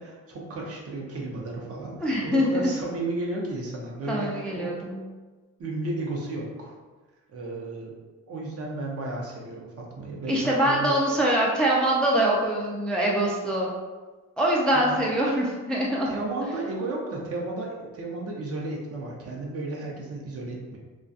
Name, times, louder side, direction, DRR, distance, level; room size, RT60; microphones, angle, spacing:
voice 1, 0.0-4.7 5.6-6.7 7.3-7.9 8.3-10.9 14.7-15.0 16.0-20.8, right 2 dB, 50° right, -2 dB, 0.7 m, -33 dB
voice 2, 2.0-2.7 4.1-5.0 10.3-13.7 14.4-16.1, right 1 dB, 5° left, -3 dB, 0.3 m, -24 dB
2.3 x 2.3 x 2.6 m, 1.3 s
cardioid pair, 90°, 30 cm